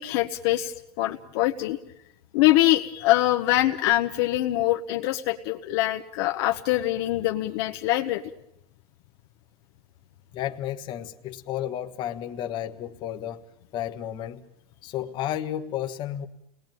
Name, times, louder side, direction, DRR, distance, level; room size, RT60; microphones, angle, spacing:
voice 1, 0.0-1.8 2.3-8.2, left 15 dB, 40° left, 1.1 m, -24 dB
voice 2, 10.3-13.4 13.7-14.4 14.8-16.3, left 11 dB, 25° left, 1.4 m, -32 dB
29.5 x 20.5 x 9.3 m
supercardioid pair, 175°, 19 cm